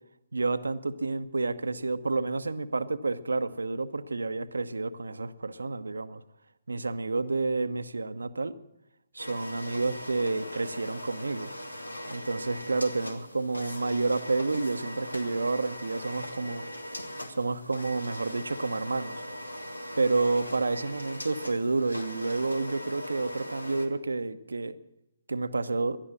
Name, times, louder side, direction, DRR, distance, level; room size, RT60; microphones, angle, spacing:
voice 1, 0.3-6.2 6.7-8.5 9.1-11.5 12.1-16.6 17.3-19.2 20.0-24.8 25.3-26.0, right 3 dB, 70° right, 12 dB, 0.9 m, -30 dB
sound 1, 9.2-23.9, equal, 80° left, 1.8 m, -40 dB
19.0 x 12.0 x 6.2 m, 0.88 s
figure-of-eight pair, 135°, 0 cm